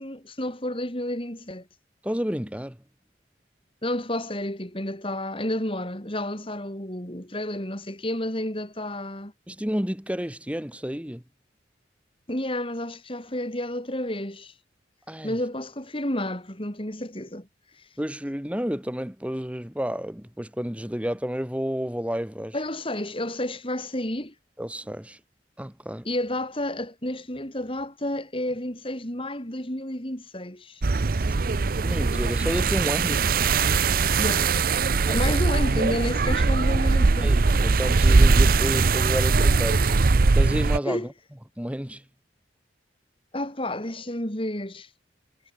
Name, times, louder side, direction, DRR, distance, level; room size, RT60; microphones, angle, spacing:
voice 1, 0.0-1.6 3.8-9.3 12.3-14.5 15.2-17.5 22.5-24.3 26.1-30.8 34.2-34.5 35.1-37.3 40.9-41.1 43.3-44.9, left 1 dB, 30° left, 5.4 m, -30 dB
voice 2, 2.0-2.8 9.5-11.2 15.1-15.4 18.0-22.5 24.6-25.2 25.6-26.1 31.2-31.3 31.8-33.2 35.1-35.4 37.2-39.9 40.3-41.1 41.6-42.0, equal, 5° right, 1.6 m, -30 dB
sound 1, 30.8-40.8, right 4 dB, 50° right, 0.6 m, -21 dB
head